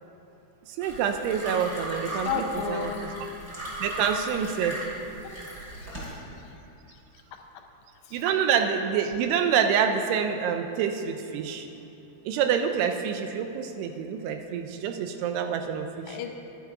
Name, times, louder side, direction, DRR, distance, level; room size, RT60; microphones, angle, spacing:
sound 1, 0.8-6.1, equal, 25° right, 2.7 m, -37 dB
voice 1, 0.8-2.9 3.8-4.8 8.1-11.7 12.3-16.2, right 7 dB, 80° right, 7 dB, 2.6 m, -27 dB
voice 2, 2.3-3.0 5.2-5.3 5.6-6.6 6.9-7.0 8.1-8.2 16.1-16.3, left 7 dB, 90° left, 4 dB, 2.8 m, -34 dB
10.5 x 9.7 x 4.7 m, 3.0 s
omnidirectional pair, 4.9 m